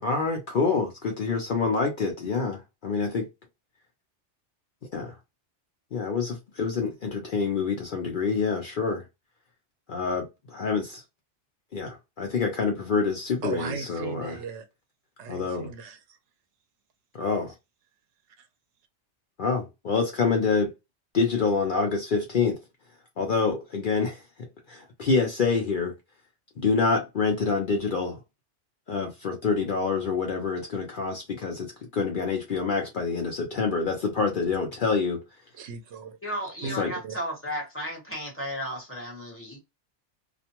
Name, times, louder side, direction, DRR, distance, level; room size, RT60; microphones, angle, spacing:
voice 1, 0.0-3.3 4.9-5.1 5.9-9.0 9.9-11.0 11.7-14.4 15.3-15.7 17.1-17.5 19.4-20.7 21.1-22.6 23.2-24.2 24.7-25.9 26.6-28.2 28.9-35.2 36.8-36.9, left 4 dB, 55° left, 0.6 m, -27 dB
voice 2, 13.4-14.7 15.2-16.2 18.4-18.5 35.5-36.2 36.6-37.2, right 5 dB, 80° right, 0.9 m, -37 dB
voice 3, 36.2-39.6, equal, 10° left, 1.1 m, -34 dB
2.5 x 2.1 x 2.8 m
omnidirectional pair, 1.2 m